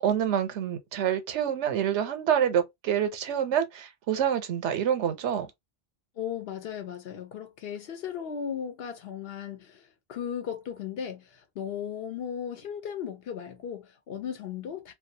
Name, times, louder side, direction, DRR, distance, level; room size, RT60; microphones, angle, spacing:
voice 1, 0.0-5.5, right 9 dB, 85° right, 0.9 m, -27 dB
voice 2, 6.2-9.8 10.1-14.9, left 8 dB, 65° left, 0.8 m, -36 dB
2.3 x 2.3 x 2.6 m
omnidirectional pair, 1.2 m